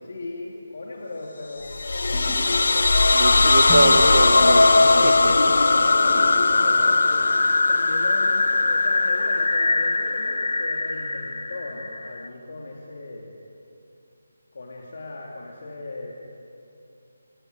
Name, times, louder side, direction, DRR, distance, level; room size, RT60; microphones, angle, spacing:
voice 1, 0.0-3.9 5.3-13.3 14.5-16.1, left 2 dB, 60° left, -1 dB, 3.2 m, -37 dB
sound 1, 1.7-12.3, left 3 dB, 80° left, 1.2 m, -19 dB
sound 2, 2.1-5.2 5.5-5.6 6.1-9.0 9.4-10.0, left 2 dB, 20° left, 3.2 m, -43 dB
voice 2, 3.1-5.3, right 3 dB, 65° right, 8 dB, 1.9 m, -24 dB
Acoustic guitar / Strum, 3.7-6.8, left 2 dB, ahead, 1.3 m, -40 dB
28.0 x 18.5 x 8.2 m, 2.7 s
figure-of-eight pair, 165°, 0 cm